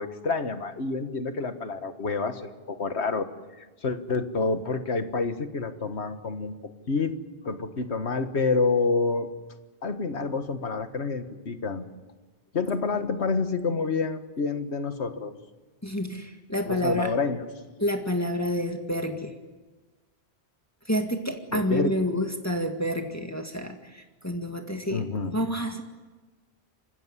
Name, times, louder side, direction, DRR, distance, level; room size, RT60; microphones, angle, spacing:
voice 1, 0.0-3.3 3.6-6.5 6.9-7.2 7.4-9.3 9.8-11.9 12.5-15.3 16.7-17.4 21.5-21.9 24.9-25.3, left 4 dB, 80° left, 9 dB, 1.8 m, -28 dB
voice 2, 15.8-17.1 17.8-19.4 20.9-25.8, equal, 15° left, 3 dB, 2.0 m, -29 dB
28.0 x 15.5 x 9.8 m, 1.2 s
omnidirectional pair, 1.1 m